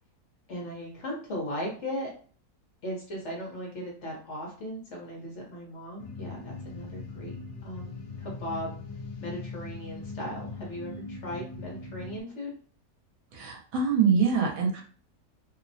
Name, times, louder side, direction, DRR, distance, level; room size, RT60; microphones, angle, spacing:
voice 1, 0.5-2.1 2.8-7.3 7.6-7.9 8.2-8.8 9.2-12.5, equal, 55° left, -2 dB, 1.0 m, -37 dB
sound 1, 6.0-12.2, left 3 dB, 80° left, 1.1 m, -40 dB
voice 2, 13.3-14.8, right 6 dB, 70° right, 0 dB, 1.1 m, -24 dB
2.8 x 2.1 x 2.6 m, 0.42 s
omnidirectional pair, 1.6 m